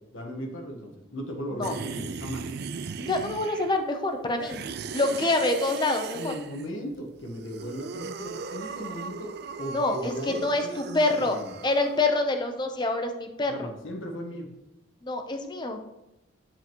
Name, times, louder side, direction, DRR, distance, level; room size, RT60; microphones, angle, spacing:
voice 1, 0.1-2.6 5.0-5.3 6.1-9.3 9.6-11.6 13.5-14.5, equal, 70° left, 1 dB, 1.3 m, -37 dB
sound 1, 1.6-3.9 4.4-6.7 7.3-12.0, right 5 dB, 50° right, 0.3 m, -37 dB
voice 2, 3.0-4.6 4.9-6.3 9.7-11.4 11.6-13.7 15.0-15.8, left 2 dB, 20° left, 4 dB, 0.7 m, -26 dB
8.1 x 7.4 x 3.0 m, 0.95 s
head